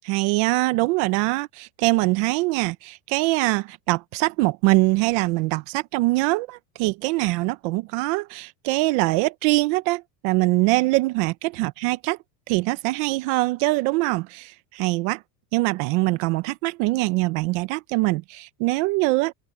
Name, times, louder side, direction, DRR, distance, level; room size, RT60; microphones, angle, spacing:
voice 1, 0.1-12.2 12.5-15.2 15.5-19.3, right 22 dB, 50° right, 0.9 m, -23 dB
supercardioid pair, 160°, 47 cm